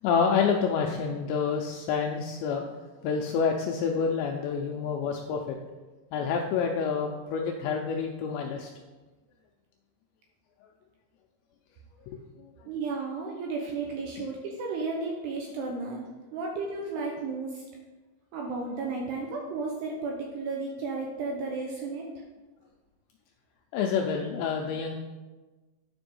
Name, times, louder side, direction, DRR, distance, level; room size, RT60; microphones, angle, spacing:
voice 1, 0.0-2.7 3.0-5.6 6.1-8.7 12.1-12.5 23.7-24.9, left 6 dB, 85° left, 1 dB, 2.6 m, -28 dB
voice 2, 12.7-17.6 18.3-22.0, right 3 dB, 75° right, 0 dB, 2.5 m, -33 dB
10.0 x 5.2 x 5.3 m, 1.2 s
omnidirectional pair, 5.7 m